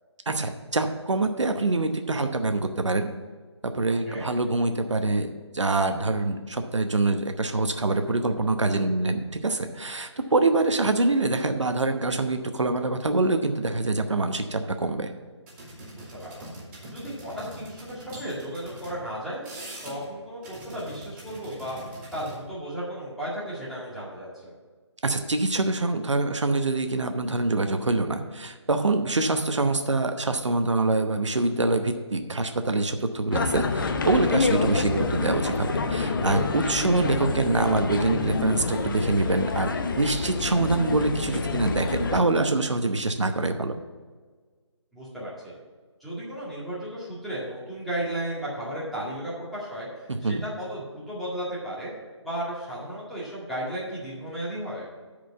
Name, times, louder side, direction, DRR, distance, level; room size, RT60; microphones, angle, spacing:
voice 1, 0.3-3.1 3.6-15.1 25.0-39.7 40.0-43.7 50.1-50.4, right 2 dB, 80° right, 7 dB, 0.9 m, -25 dB
sound 1, 15.5-19.0 19.3-20.1 20.4-22.4, right 1 dB, 25° right, 2.8 m, -43 dB
voice 2, 15.9-16.5 16.9-19.4 19.8-21.8 22.1-24.5 36.7-36.9 44.9-45.6 46.0-51.9 52.2-54.9, right 1 dB, ahead, -10 dB, 2.0 m, -34 dB
sound 2, 33.3-42.2, left 4 dB, 45° left, 0.8 m, -28 dB
9.0 x 5.1 x 7.0 m, 1.5 s
figure-of-eight pair, 150°, 15 cm